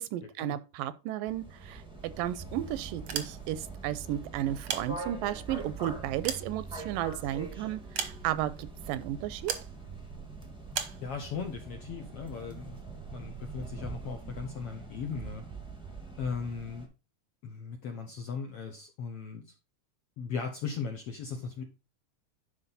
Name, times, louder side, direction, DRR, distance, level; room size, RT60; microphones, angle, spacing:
voice 1, 0.0-9.5, right 12 dB, 85° right, 2.3 m, -34 dB
sound 1, 1.3-16.9, right 3 dB, 5° right, 0.4 m, -43 dB
sound 2, 2.9-3.7 4.4-5.4 5.9-7.2 7.9-8.6 9.5-9.7 10.7-11.0, right 8 dB, 65° right, 1.4 m, -36 dB
voice 2, 11.0-12.8 13.1-15.4 16.2-16.9 17.4-19.4 20.2-21.6, left 5 dB, 70° left, 1.4 m, -37 dB
11.0 x 5.2 x 4.1 m
omnidirectional pair, 4.0 m